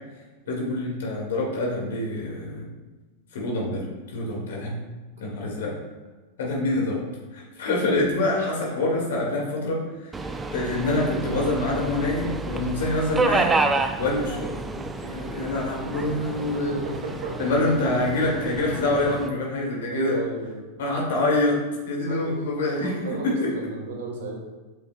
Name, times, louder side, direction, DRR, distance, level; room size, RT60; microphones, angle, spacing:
voice 1, 0.5-2.7 3.3-3.9 4.1-4.8 5.2-5.7 6.4-7.0 7.3-13.5 14.0-16.8 17.4-20.2 20.8-21.6 21.9-23.5, left 2 dB, 60° left, -2 dB, 1.9 m, -26 dB
Subway metro underground, 10.1-19.3, right 3 dB, 15° right, 0.4 m, -29 dB
voice 2, 16.5-17.4 19.9-20.6 22.0-24.4, right 3 dB, 55° right, 0 dB, 1.3 m, -33 dB
8.1 x 5.7 x 2.2 m, 1.2 s
figure-of-eight pair, 90°, 0 cm